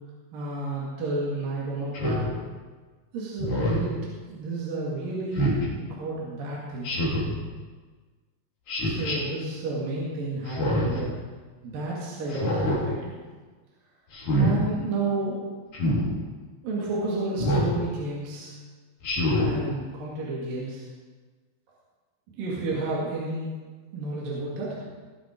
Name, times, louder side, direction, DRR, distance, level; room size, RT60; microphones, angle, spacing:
voice 1, 0.3-2.3 3.1-6.9 8.8-11.2 11.6-13.2 14.4-15.6 16.6-18.6 19.4-20.9 22.3-23.5 23.9-24.8, right 2 dB, 60° right, -5 dB, 3.8 m, -31 dB
Speech synthesizer, 1.9-2.3 3.4-3.9 5.3-5.6 6.8-7.3 8.7-9.2 10.5-11.0 12.3-12.8 14.1-14.5 15.7-16.0 17.4-17.7 19.0-19.5, equal, 50° left, 4.7 m, -25 dB
21.0 x 7.7 x 5.2 m, 1.4 s
omnidirectional pair, 4.6 m